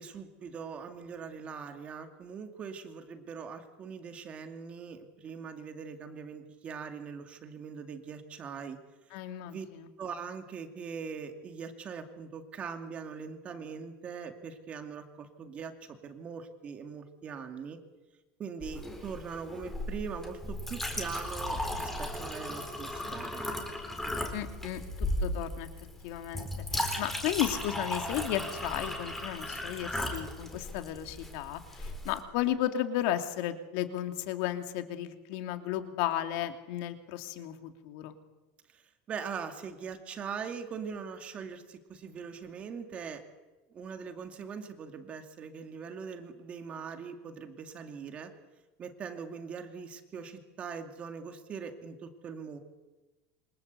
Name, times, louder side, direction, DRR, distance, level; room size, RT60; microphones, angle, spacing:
voice 1, 0.0-8.8 9.4-9.7 10.0-17.8 18.4-23.4 38.7-43.2 43.7-48.3 48.8-52.6, right 6 dB, 25° right, 6 dB, 2.3 m, -41 dB
voice 2, 9.1-9.9 24.3-25.7 26.0-26.5 26.7-38.2, left 12 dB, 55° left, 7 dB, 2.8 m, -34 dB
Chink clink, 18.6-32.2, left 1 dB, 5° left, 3.9 m, -36 dB
28.0 x 26.0 x 8.2 m, 1.2 s
supercardioid pair, 175°, 5 cm